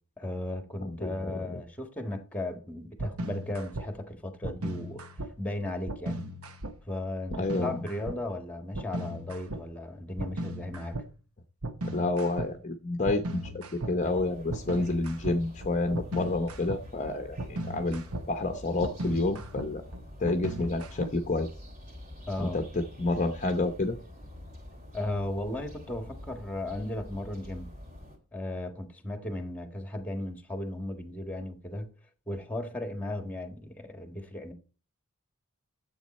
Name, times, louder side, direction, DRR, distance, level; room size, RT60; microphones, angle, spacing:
voice 1, 0.2-6.2 6.9-11.0 22.3-22.6 24.9-27.7 28.3-31.9 32.3-34.5, left 1 dB, 5° left, 1.5 m, -36 dB
voice 2, 0.8-1.6 7.3-7.8 11.9-17.4 17.7-18.0 18.3-19.8 20.2-21.5 22.4-24.0, left 2 dB, 35° left, 0.8 m, -29 dB
sound 1, 3.0-3.9 4.4-5.3 5.9-6.7 7.3-8.2 8.7-9.6 10.2-11.1 11.6-12.5 13.1-21.4, right 1 dB, 70° right, 1.1 m, -37 dB
sound 2, 14.0-28.2, left 1 dB, 35° right, 3.0 m, -47 dB
10.5 x 7.9 x 4.2 m
head